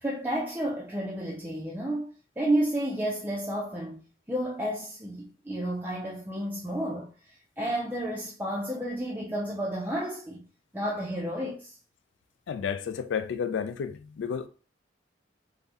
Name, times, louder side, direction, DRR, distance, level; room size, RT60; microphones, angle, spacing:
voice 1, 0.0-2.1 2.4-4.0 4.3-10.4 10.7-11.8, right 1 dB, 10° right, 0.4 m, -31 dB
voice 2, 12.5-14.5, left 7 dB, 85° left, 0.3 m, -31 dB
2.6 x 2.0 x 3.4 m
head